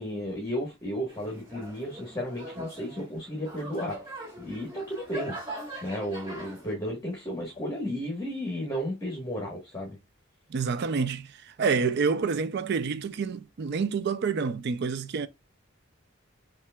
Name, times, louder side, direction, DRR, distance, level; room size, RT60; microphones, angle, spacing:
voice 1, 0.0-4.0 4.4-10.0, equal, 15° left, 1.1 m, -33 dB
sound 1, 1.1-6.7, right 1 dB, 25° right, 1.8 m, -41 dB
voice 2, 10.5-15.3, right 5 dB, 55° right, 0.4 m, -28 dB
5.6 x 2.5 x 2.2 m
head